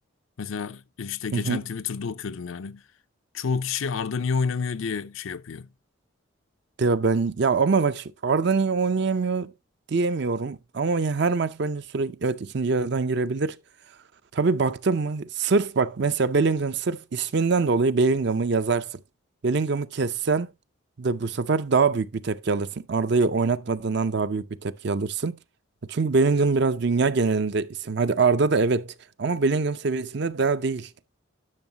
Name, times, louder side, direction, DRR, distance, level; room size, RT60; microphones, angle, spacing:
voice 1, 0.4-2.8 3.3-5.7, left 5 dB, 75° left, 0.5 m, -29 dB
voice 2, 6.8-9.5 9.9-13.6 14.3-19.0 19.4-20.5 21.0-25.4 25.9-28.9 29.2-30.9, right 4 dB, 55° right, 0.5 m, -24 dB
10.5 x 6.3 x 2.8 m
head